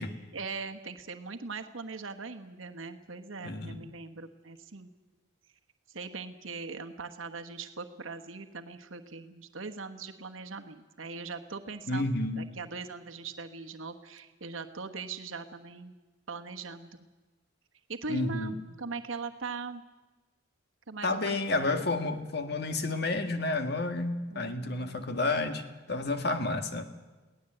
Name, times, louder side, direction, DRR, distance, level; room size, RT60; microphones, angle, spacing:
voice 1, 0.3-4.9 5.9-12.1 12.4-15.9 16.3-16.9 17.9-19.8 20.9-21.9 24.3-25.1, right 4 dB, 85° right, 5 dB, 1.3 m, -40 dB
voice 2, 3.4-3.8 11.9-12.4 18.1-18.6 21.0-26.8, left 2 dB, 55° left, 7 dB, 1.8 m, -30 dB
23.0 x 17.0 x 7.9 m, 1.2 s
head